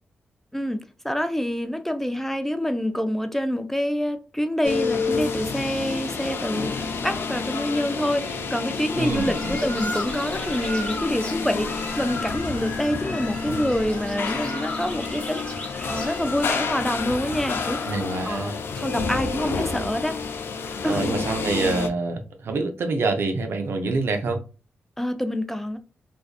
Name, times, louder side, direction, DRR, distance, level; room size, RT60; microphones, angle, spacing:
voice 1, 0.5-15.4 15.9-17.8 18.2-20.2 20.8-21.1 25.0-25.8, equal, 5° left, 0.4 m, -27 dB
sound 1, 4.6-21.9, left 5 dB, 70° left, 0.4 m, -29 dB
sound 2, 8.9-18.2, left 1 dB, 25° left, 1.1 m, -36 dB
voice 2, 9.0-9.7 17.8-18.6 20.8-24.4, right 3 dB, 70° right, 0.5 m, -26 dB
2.5 x 2.3 x 2.3 m
cardioid pair, 55°, 4 cm